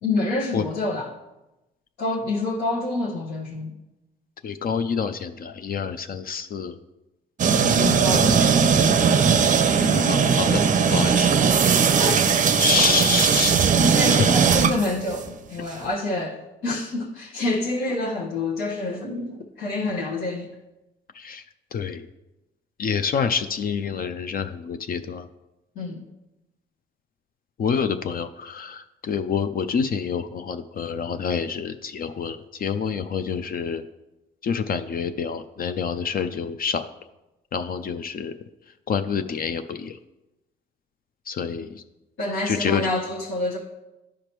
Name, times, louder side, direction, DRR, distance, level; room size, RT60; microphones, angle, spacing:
voice 1, 0.0-1.1 2.0-3.7 7.6-10.1 12.0-12.3 13.7-16.4 16.6-20.5 25.7-26.0 42.2-43.6, left 2 dB, 85° left, -6 dB, 1.3 m, -28 dB
voice 2, 4.4-6.8 8.1-8.7 10.0-10.7 10.9-11.3 12.6-13.5 14.1-14.3 21.1-21.4 21.7-22.1 22.8-25.3 27.6-33.8 34.4-36.9 37.5-38.3 38.9-40.0 41.3-41.8 42.4-42.9, left 6 dB, 45° left, 8 dB, 0.4 m, -27 dB
sound 1, 7.4-15.3, right 6 dB, 40° right, 0.5 m, -19 dB
12.5 x 5.0 x 3.0 m, 0.99 s
cardioid pair, 90°, 20 cm